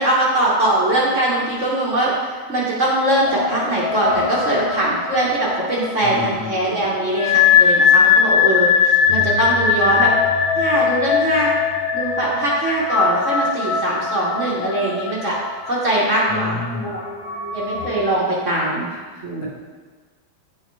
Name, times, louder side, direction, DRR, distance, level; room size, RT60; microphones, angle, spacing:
voice 1, 0.0-10.1 10.6-11.5 11.9-15.4 15.7-16.6 16.8-17.0 17.5-18.9 19.2-19.5, right 1 dB, 45° right, -6 dB, 1.2 m, -21 dB
sound 1, 3.3-18.0, left 7 dB, 85° left, 1.5 m, -20 dB
voice 2, 6.0-6.8 16.3-17.0 18.9-19.5, left 2 dB, 60° left, -3 dB, 1.8 m, -31 dB
10.0 x 4.7 x 3.1 m, 1.4 s
omnidirectional pair, 2.1 m